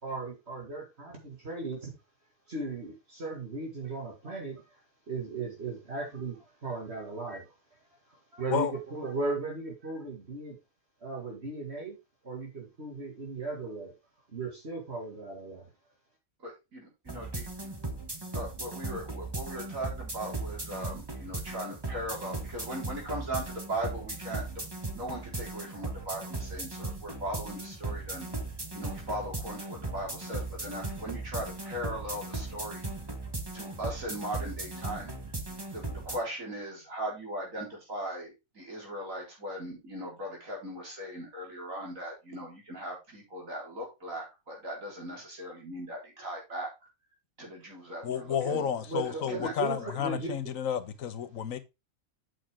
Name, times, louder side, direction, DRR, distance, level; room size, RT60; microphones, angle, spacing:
voice 1, 0.0-1.9 2.5-4.6 5.1-7.5 8.3-10.6 11.0-12.0 12.2-14.0 14.3-15.7 48.4-50.3, right 3 dB, 50° right, 2.3 m, -37 dB
voice 2, 16.4-17.5 18.3-24.7 24.9-32.8 33.5-35.4 35.7-46.7 47.4-48.7 49.0-49.9, right 1 dB, 75° right, 4.4 m, -39 dB
sound 1, 17.1-36.2, right 2 dB, 20° right, 1.4 m, -38 dB
voice 3, 48.0-51.6, left 8 dB, 75° left, 1.4 m, -31 dB
8.5 x 6.3 x 3.6 m
omnidirectional pair, 1.4 m